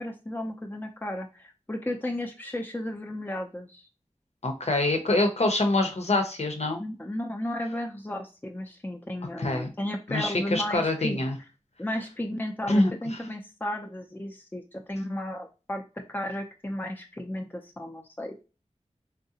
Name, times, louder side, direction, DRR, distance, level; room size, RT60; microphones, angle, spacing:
voice 1, 0.0-3.8 6.8-11.2 11.8-14.6 14.9-18.4, left 1 dB, 15° left, 3 dB, 0.5 m, -34 dB
voice 2, 4.4-6.8 9.4-9.7 10.1-11.3 12.7-13.2, left 2 dB, 60° left, 4 dB, 0.8 m, -25 dB
3.7 x 2.1 x 2.7 m, 0.31 s
wide cardioid pair, 55°, 12 cm